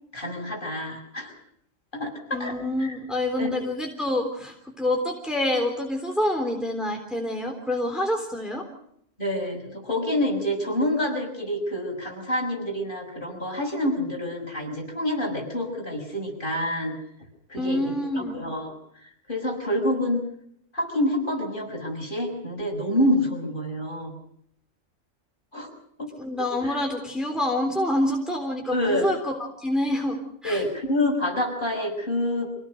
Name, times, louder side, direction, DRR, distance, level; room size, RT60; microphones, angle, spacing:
voice 1, 0.1-1.3 1.9-3.0 3.4-3.6 9.2-17.0 17.5-18.7 19.0-20.2 20.7-24.1 25.5-25.7 26.0-26.1 26.6-26.8 28.7-29.1 30.4-32.5, left 1 dB, 40° left, 1 dB, 6.6 m, -27 dB
voice 2, 2.3-8.7 17.6-18.4 26.2-30.6, left 1 dB, ahead, 2 dB, 3.5 m, -27 dB
26.0 x 18.0 x 6.5 m, 0.73 s
omnidirectional pair, 1.3 m